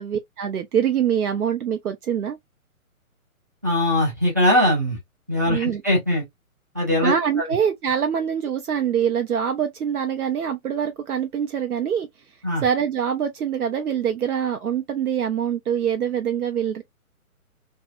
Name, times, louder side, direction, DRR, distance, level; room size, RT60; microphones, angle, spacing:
voice 1, 0.0-2.4 5.5-5.8 7.0-12.1 12.6-16.8, right 8 dB, 90° right, 0.6 m, -24 dB
voice 2, 3.6-5.0 5.3-6.2 6.7-7.1 7.4-7.5 12.4-12.6, left 1 dB, 15° right, 0.4 m, -21 dB
2.6 x 2.1 x 2.2 m
figure-of-eight pair, 135°, 43 cm